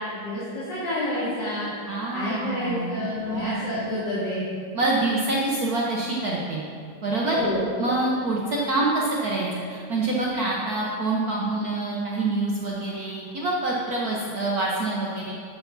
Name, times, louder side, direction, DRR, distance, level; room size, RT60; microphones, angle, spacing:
voice 1, 0.1-1.7 2.1-4.4 7.3-7.7, left 1 dB, 50° left, -12 dB, 3.0 m, -28 dB
voice 2, 1.9-3.7 4.7-6.6 7.0-7.4 7.8-15.3, right 2 dB, 55° right, -4 dB, 1.2 m, -26 dB
12.5 x 7.0 x 4.0 m, 2.3 s
omnidirectional pair, 2.4 m